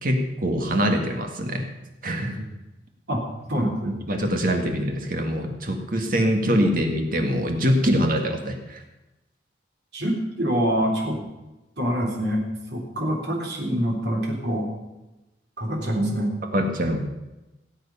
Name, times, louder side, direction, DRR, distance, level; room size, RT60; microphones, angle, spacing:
voice 1, 0.0-1.7 2.0-2.5 4.1-8.8 16.5-17.0, equal, 50° right, 4 dB, 1.8 m, -24 dB
voice 2, 3.1-4.0 9.9-11.2 11.8-12.4 12.7-14.7 15.6-16.4, equal, 65° right, -1 dB, 3.5 m, -25 dB
17.5 x 8.1 x 5.6 m, 1.0 s
head